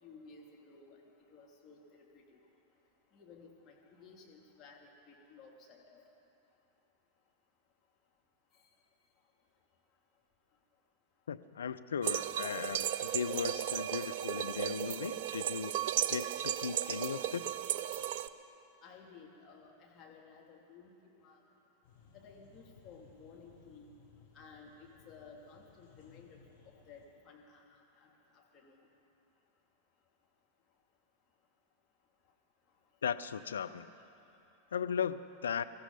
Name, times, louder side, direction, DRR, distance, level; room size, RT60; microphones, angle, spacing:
voice 1, 0.0-2.4 3.1-6.0 18.8-21.4 22.1-23.9 24.3-26.4 26.9-28.8, left 4 dB, 30° left, -2 dB, 2.7 m, -56 dB
voice 2, 11.3-15.7 16.1-17.4 33.0-33.9 34.7-35.7, left 7 dB, 65° left, 11 dB, 0.5 m, -37 dB
sound 1, 12.0-18.3, right 11 dB, 50° right, 0.4 m, -35 dB
sound 2, 21.8-27.1, left 6 dB, 50° left, 4.7 m, -62 dB
24.0 x 14.0 x 4.0 m, 2.8 s
figure-of-eight pair, 90°, 0 cm